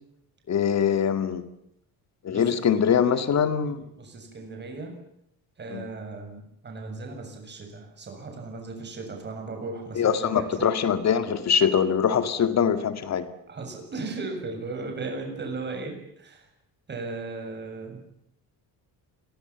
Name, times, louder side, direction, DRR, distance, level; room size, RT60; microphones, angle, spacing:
voice 1, 0.5-1.4 2.2-3.8 5.7-5.8 10.0-13.3, left 7 dB, 40° left, 10 dB, 2.3 m, -23 dB
voice 2, 2.9-3.2 3.6-4.9 5.6-10.8 13.5-16.5 16.9-18.0, right 3 dB, 25° right, 3 dB, 7.2 m, -37 dB
29.0 x 22.5 x 7.3 m, 0.77 s
cardioid pair, 165°, 39 cm